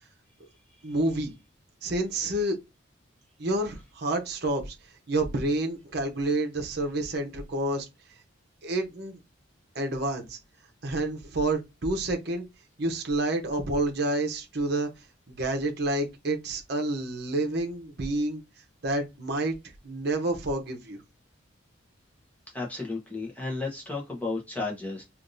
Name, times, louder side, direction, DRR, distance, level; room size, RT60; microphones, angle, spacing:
voice 1, 0.8-1.3 1.8-2.6 3.4-4.7 5.1-7.9 8.6-9.2 9.7-10.4 10.8-12.5 12.8-14.9 15.3-18.4 18.8-19.6 19.8-21.0, right 2 dB, 55° right, 0.8 m, -29 dB
voice 2, 22.5-25.0, left 3 dB, 10° left, 0.9 m, -33 dB
3.4 x 2.5 x 2.6 m
head